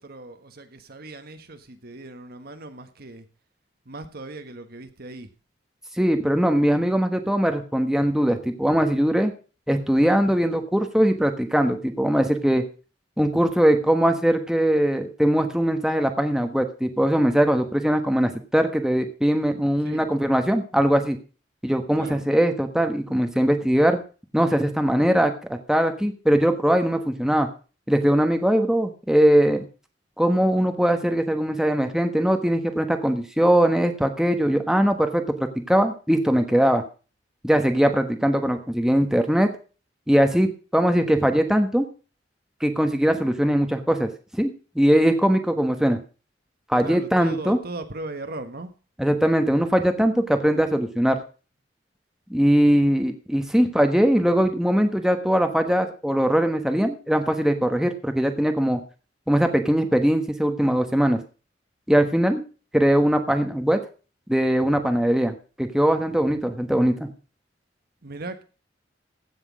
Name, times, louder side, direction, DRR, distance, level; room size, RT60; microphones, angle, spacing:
voice 1, 0.0-3.2 3.9-5.3 19.8-20.0 22.0-22.2 46.8-48.7 68.0-68.4, right 2 dB, 55° right, 8 dB, 1.3 m, -38 dB
voice 2, 6.0-9.3 9.7-12.6 13.2-21.2 21.6-24.0 24.3-27.5 27.9-29.6 30.2-36.8 37.4-39.5 40.1-41.8 42.6-44.1 44.4-46.0 46.7-47.6 49.0-51.2 52.3-58.8 59.3-61.2 61.9-62.4 62.7-63.8 64.3-67.1, equal, 5° right, 6 dB, 1.2 m, -21 dB
15.5 x 6.2 x 6.1 m, 0.36 s
head